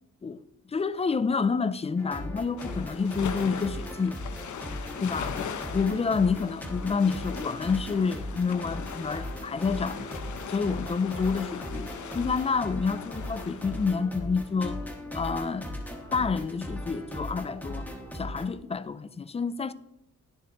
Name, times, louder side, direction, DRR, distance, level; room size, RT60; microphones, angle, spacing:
voice 1, 0.7-4.2 5.0-5.4 5.7-10.1 10.5-11.9 12.1-14.8 15.1-15.7 16.1-17.9 18.1-19.7, left 5 dB, 20° left, 0.3 m, -28 dB
sound 1, 2.0-18.5, equal, 5° left, 1.5 m, -38 dB
sound 2, 2.6-13.9, left 7 dB, 70° left, 0.9 m, -40 dB
21.0 x 7.0 x 3.0 m
wide cardioid pair, 145°, 31 cm